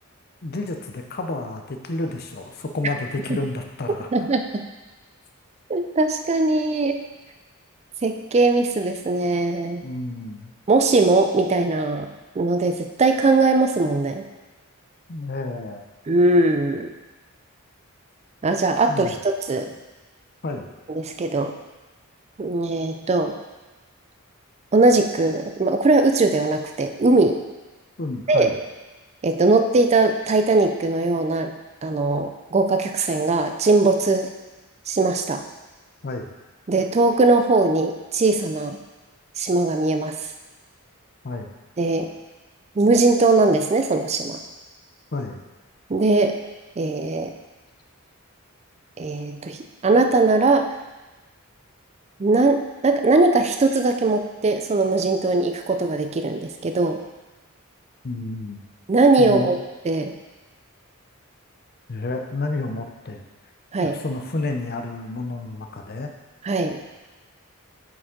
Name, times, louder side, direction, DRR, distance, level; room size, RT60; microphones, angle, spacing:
voice 1, 0.4-4.1 9.8-10.5 15.1-15.8 18.9-19.1 20.4-20.7 28.0-28.6 36.0-36.3 41.2-41.5 45.1-45.4 58.0-58.6 59.2-59.5 61.9-63.2 63.8-66.1, left 2 dB, 45° left, 4 dB, 0.6 m, -30 dB
voice 2, 4.1-4.4 5.7-7.0 8.0-9.8 10.7-12.1 12.4-14.2 16.1-16.9 18.4-19.7 20.9-21.5 22.4-23.4 24.7-27.4 28.3-28.5 29.2-31.5 31.8-34.3 34.9-35.4 36.7-38.8 39.4-40.2 41.8-42.1 42.8-44.4 45.9-46.3 46.8-47.3 49.0-50.7 52.2-57.0 58.9-59.6 59.9-60.1 63.7-64.0 66.4-66.8, right 3 dB, 30° right, 6 dB, 0.4 m, -20 dB
7.9 x 5.1 x 3.8 m, 1.1 s
head